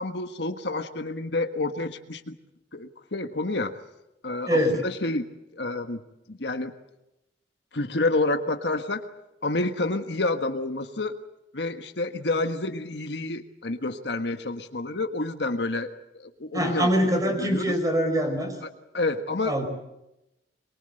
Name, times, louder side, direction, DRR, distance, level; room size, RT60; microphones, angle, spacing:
voice 1, 0.0-2.3 2.7-3.8 4.2-5.3 5.5-6.0 6.3-6.7 7.7-9.0 9.4-11.1 11.5-16.9 17.4-17.7 18.6-18.7 18.9-19.6, left 2 dB, 70° left, 7 dB, 1.5 m, -29 dB
voice 2, 4.5-4.8 16.5-18.5 19.4-19.7, equal, 20° right, 5 dB, 5.1 m, -23 dB
23.0 x 23.0 x 7.9 m, 0.91 s
head